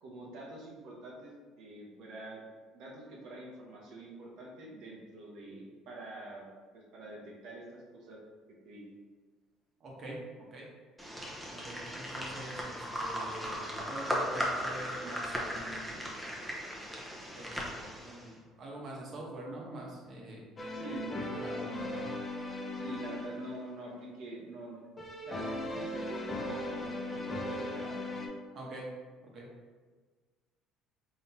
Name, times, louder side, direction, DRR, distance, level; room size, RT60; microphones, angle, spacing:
voice 1, 0.0-2.4 2.7-6.5 6.7-8.2 8.6-8.8 20.7-21.1 21.6-21.9 22.7-24.9 25.2-27.9, right 2 dB, 70° right, -3 dB, 1.0 m, -46 dB
voice 2, 9.8-10.2 10.5-10.7 11.5-16.1 17.3-20.4 21.2-22.1 28.5-28.8 29.2-29.5, right 1 dB, 50° right, -3 dB, 1.1 m, -45 dB
sound 1, 11.0-18.3, equal, 5° right, 0.8 m, -37 dB
sound 2, 20.6-23.8 25.0-28.3, left 1 dB, 30° left, 0.7 m, -38 dB
3.9 x 3.4 x 2.8 m, 1.4 s
supercardioid pair, 95°, 0 cm